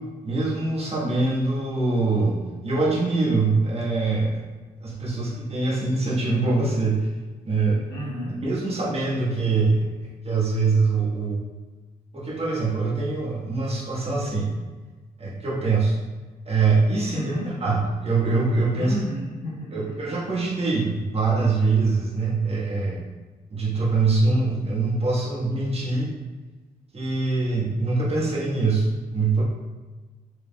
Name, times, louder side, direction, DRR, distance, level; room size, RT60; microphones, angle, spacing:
voice 1, 0.2-4.4 4.8-7.1 7.4-7.8 8.4-9.8 10.2-11.4 12.1-14.5 15.2-15.9 16.5-17.3 17.6-18.9 19.7-23.0 23.5-26.1 26.9-29.4, right 3 dB, 40° right, -6 dB, 1.4 m, -23 dB
voice 2, 7.9-8.4 17.1-17.5 18.8-20.0, equal, 80° left, -7 dB, 1.4 m, -31 dB
4.8 x 3.3 x 2.3 m, 1.3 s
cardioid pair, 80°, 16 cm